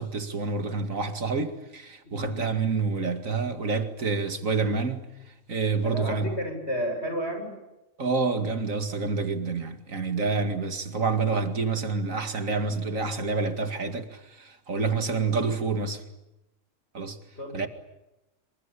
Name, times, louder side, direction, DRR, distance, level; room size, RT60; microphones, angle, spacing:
voice 1, 0.0-5.1 5.5-6.3 8.0-16.0 16.9-17.2 17.5-17.7, right 4 dB, 85° right, 2.6 m, -28 dB
voice 2, 2.0-2.4 5.8-7.5 17.4-17.7, equal, 55° left, 7.9 m, -32 dB
26.5 x 25.0 x 8.5 m
omnidirectional pair, 1.4 m